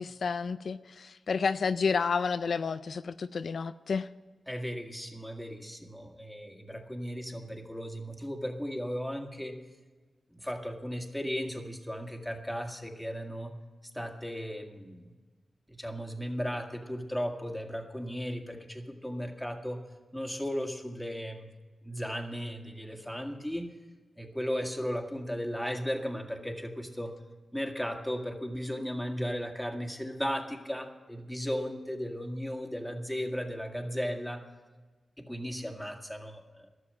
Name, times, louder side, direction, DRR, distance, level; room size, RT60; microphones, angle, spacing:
voice 1, 0.0-4.1, left 5 dB, 75° left, 0.3 m, -30 dB
voice 2, 4.5-9.6 10.3-13.5 13.9-15.1 15.7-19.8 20.1-21.5 21.8-23.7 24.2-27.1 27.5-34.4 35.2-36.7, equal, 5° left, 2.0 m, -36 dB
13.0 x 7.1 x 9.5 m
cardioid pair, 55°, 0 cm